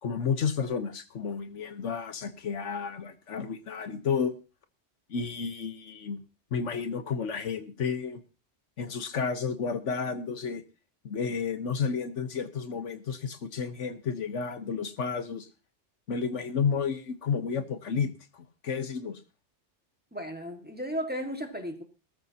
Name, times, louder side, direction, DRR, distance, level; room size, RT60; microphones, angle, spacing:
voice 1, 0.0-4.4 5.1-6.2 6.5-8.2 8.8-10.6 11.0-15.5 16.1-19.2, left 6 dB, 75° left, 9 dB, 1.4 m, -31 dB
voice 2, 20.1-21.8, equal, 10° right, 4 dB, 1.8 m, -34 dB
18.5 x 13.5 x 2.9 m, 0.33 s
omnidirectional pair, 1.2 m